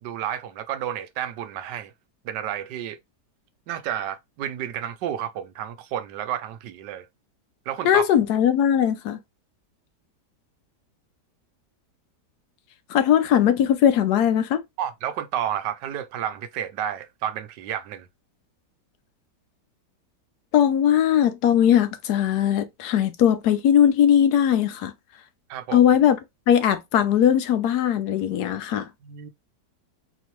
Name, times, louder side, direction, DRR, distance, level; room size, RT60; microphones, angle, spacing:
voice 1, 0.0-1.9 2.2-3.0 3.7-7.1 7.7-8.1 14.8-18.1 25.5-25.8 29.0-29.3, right 10 dB, 90° right, 1.3 m, -31 dB
voice 2, 7.8-9.2 12.9-14.6 20.5-24.9 25.7-26.2 26.5-28.9, left 9 dB, 70° left, 1.1 m, -19 dB
4.3 x 2.8 x 3.0 m
omnidirectional pair, 1.8 m